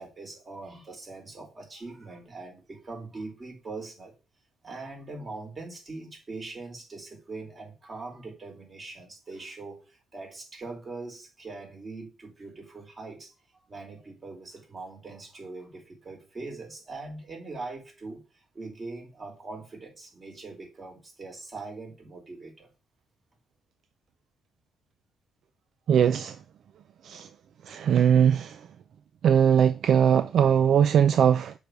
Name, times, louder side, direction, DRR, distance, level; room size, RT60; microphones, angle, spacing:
voice 1, 0.0-4.1 4.6-13.3 13.7-18.2 18.5-22.7, right 3 dB, 35° right, 4.4 m, -41 dB
voice 2, 25.9-26.4 27.0-27.3 27.7-28.6 29.2-31.5, right 8 dB, 65° right, 0.4 m, -20 dB
6.3 x 4.8 x 6.8 m
cardioid pair, 90°, 0 cm